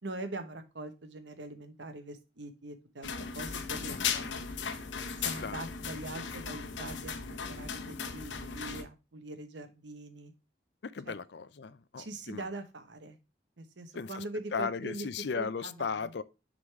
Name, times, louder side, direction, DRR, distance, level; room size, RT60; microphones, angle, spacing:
voice 1, 0.0-4.5 5.2-10.3 11.1-11.2 12.0-13.2 13.6-15.1 15.3-16.1, right 2 dB, 80° right, 1.1 m, -43 dB
sound 1, 3.0-8.8, left 6 dB, 90° left, 0.9 m, -37 dB
voice 2, 3.9-4.3 5.4-5.6 10.8-12.4 14.0-14.2 14.5-16.2, left 5 dB, 70° left, 0.5 m, -36 dB
6.4 x 4.0 x 4.6 m
head